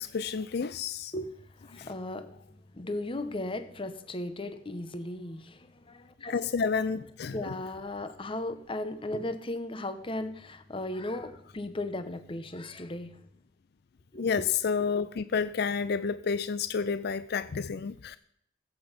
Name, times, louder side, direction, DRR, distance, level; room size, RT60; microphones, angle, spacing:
voice 1, 0.0-1.1 1.7-1.9 6.3-7.6 14.2-18.2, left 5 dB, 55° left, 0.4 m, -30 dB
voice 2, 1.1-2.5 2.7-6.4 7.3-13.2 14.1-14.4, left 1 dB, 25° left, 0.8 m, -36 dB
16.0 x 8.1 x 5.2 m
head